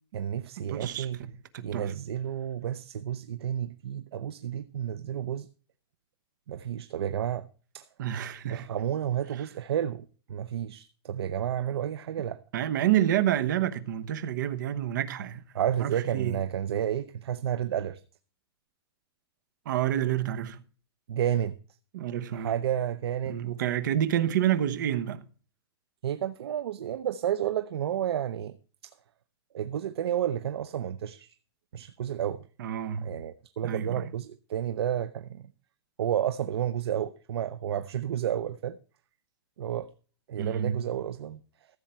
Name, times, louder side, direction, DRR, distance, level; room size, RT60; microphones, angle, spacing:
voice 1, 0.1-1.2 1.6-5.5 6.5-7.5 7.7-7.9 8.5-12.4 15.5-18.0 21.1-21.6 22.3-23.4 26.0-28.6 28.8-28.9 29.5-31.4 31.7-32.4 33.0-35.5 36.0-38.8 39.6-39.9 40.3-41.4, right 10 dB, 75° right, 0.6 m, -31 dB
voice 2, 0.7-1.9 8.0-8.7 12.5-15.4 15.8-16.4 19.6-20.6 21.9-22.6 23.3-25.2 32.6-33.2 33.6-34.1 40.4-40.9, right 11 dB, 50° right, 1.0 m, -29 dB
14.5 x 7.5 x 4.4 m
supercardioid pair, 175°, 13 cm